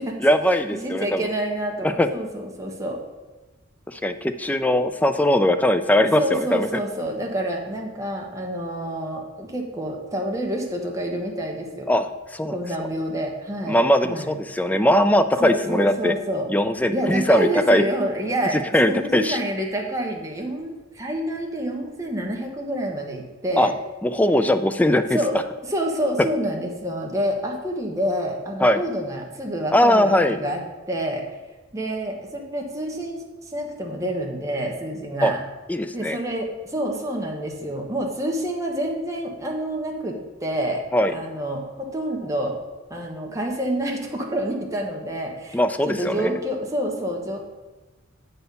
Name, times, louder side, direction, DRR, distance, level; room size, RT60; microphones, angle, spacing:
voice 1, 0.2-1.3 1.8-2.1 3.9-6.7 11.9-12.6 13.7-16.1 16.5-17.8 18.7-19.4 23.6-23.7 24.0-25.2 28.6-28.8 29.7-30.4 35.2-35.3 35.7-36.2 40.9-41.1 45.5-46.4, left 1 dB, 10° left, 9 dB, 0.3 m, -20 dB
voice 2, 0.8-3.0 6.2-11.9 12.5-14.3 15.4-16.5 16.9-23.7 25.1-25.4 25.7-30.6 30.9-31.2 31.7-33.2 33.5-35.4 35.9-42.6 42.9-47.4, right 1 dB, 15° right, 0 dB, 1.2 m, -28 dB
7.9 x 4.3 x 6.8 m, 1.2 s
head